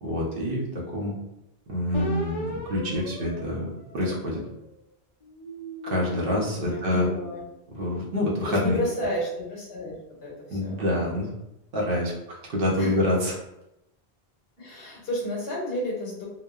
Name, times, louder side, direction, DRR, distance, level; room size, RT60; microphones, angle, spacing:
voice 1, 0.0-0.6 0.9-1.1 1.7-4.4 5.8-7.1 7.7-8.8 10.5-11.3 11.7-13.3, left 1 dB, 65° right, -3 dB, 0.8 m, -26 dB
sound 1, 1.9-4.6 5.2-7.7, left 1 dB, 55° left, 0.3 m, -38 dB
voice 2, 6.6-7.4 8.5-9.9 10.2-10.8 12.8-13.0 14.6-16.2, left 1 dB, 80° left, -4 dB, 1.1 m, -31 dB
2.9 x 2.0 x 2.3 m, 0.88 s
omnidirectional pair, 1.0 m